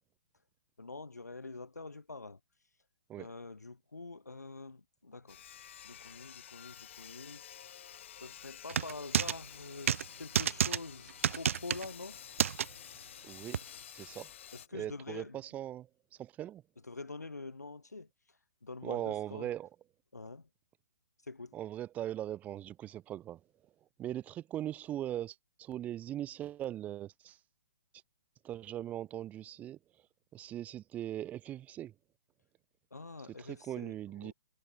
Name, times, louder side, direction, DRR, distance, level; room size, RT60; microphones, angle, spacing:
voice 1, 0.8-2.4 3.2-5.4 5.8-7.4 8.2-12.2 14.5-15.4 16.9-18.1 18.6-19.5 20.1-20.5 21.3-21.5 32.9-34.3, left 3 dB, 75° left, 7.5 m, -46 dB
Sawing, 5.3-14.7, left 10 dB, 45° left, 4.9 m, -51 dB
sound 1, 8.7-9.4 9.9-10.0 10.4-10.8 11.2-11.9 12.4-12.7 13.5-13.6, right 8 dB, 50° right, 1.0 m, -29 dB
voice 2, 13.2-13.6 13.9-14.3 14.7-16.6 18.8-19.7 21.5-23.7 24.0-27.4 28.4-29.8 30.3-31.9 33.4-34.3, right 12 dB, 15° right, 2.2 m, -40 dB
figure-of-eight pair, 125°, 9 cm